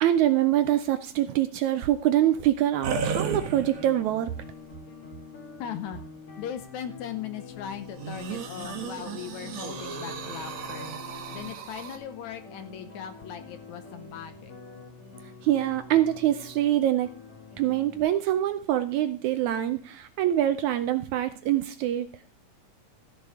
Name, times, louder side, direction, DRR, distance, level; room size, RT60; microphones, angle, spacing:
voice 1, 0.0-4.3 15.4-17.2 17.6-22.1, right 12 dB, 80° right, 10 dB, 1.8 m, -24 dB
sound 1, 2.8-4.1 4.7-4.8 8.0-12.0, right 6 dB, 55° right, 2.5 m, -34 dB
sound 2, 3.1-18.0, left 5 dB, 45° left, 2.6 m, -46 dB
voice 2, 5.6-6.0 6.4-10.9 11.3-14.5, left 9 dB, 75° left, 11 dB, 1.8 m, -38 dB
14.5 x 6.7 x 4.8 m, 0.42 s
omnidirectional pair, 3.9 m